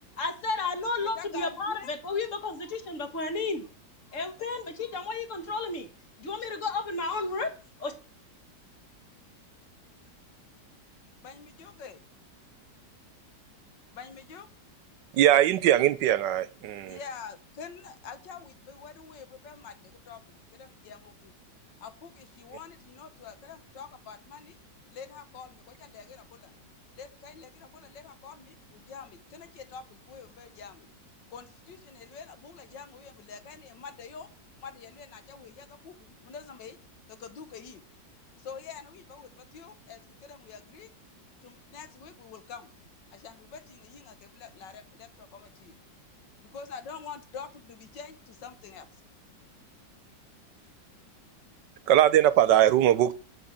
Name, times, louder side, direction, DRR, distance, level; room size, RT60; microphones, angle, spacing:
voice 1, 0.2-3.7 4.1-5.9 6.2-8.0, left 3 dB, 45° left, 1.8 m, -32 dB
voice 2, 1.0-1.9 11.2-12.0 13.9-14.5 16.9-20.2 20.5-21.3 21.8-24.6 24.9-26.6 26.9-30.9 31.3-34.3 34.6-36.8 37.1-37.8 38.4-40.9 41.4-42.7 43.1-45.8 46.4-49.0, left 6 dB, 75° left, 1.9 m, -46 dB
voice 3, 15.1-17.0 51.9-53.1, right 12 dB, 75° right, 1.3 m, -21 dB
8.9 x 8.5 x 7.5 m
omnidirectional pair, 1.9 m